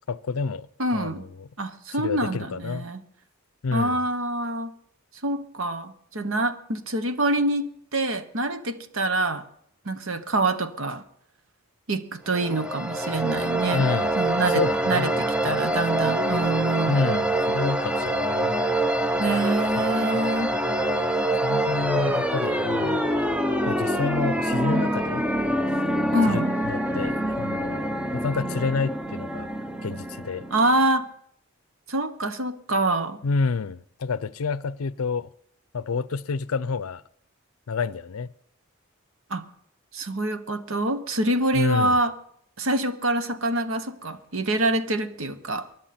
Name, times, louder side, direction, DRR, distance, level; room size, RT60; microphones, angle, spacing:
voice 1, 0.1-1.5 1.9-2.9 3.6-4.0 13.7-14.1 14.5-15.1 16.9-18.6 21.4-23.1 23.7-25.3 26.3-29.5 29.8-30.5 33.2-35.3 35.7-37.0 37.7-38.3 41.5-42.0, left 4 dB, 75° left, 0.5 m, -29 dB
voice 2, 0.8-1.2 1.6-3.0 3.7-4.8 5.2-9.4 9.8-11.0 11.9-13.8 14.2-17.0 19.2-20.6 26.1-26.5 30.5-31.1 31.9-33.2 39.3-39.4 39.9-42.1 42.6-45.7, right 2 dB, 65° right, 1.2 m, -26 dB
sound 1, 12.3-30.9, right 1 dB, 5° right, 0.7 m, -25 dB
24.0 x 11.0 x 4.3 m
head